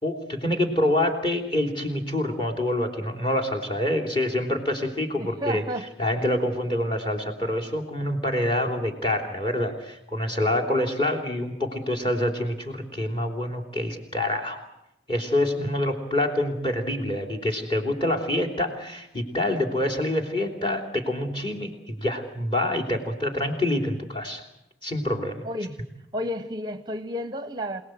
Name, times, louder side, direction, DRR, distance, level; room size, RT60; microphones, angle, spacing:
voice 1, 0.0-5.6 6.0-14.7 15.1-24.4 24.8-25.4, left 1 dB, 25° left, 4 dB, 3.3 m, -26 dB
voice 2, 5.2-5.9 25.4-25.8 26.1-27.8, equal, 20° right, 11 dB, 0.8 m, -31 dB
27.5 x 18.5 x 7.9 m, 0.86 s
head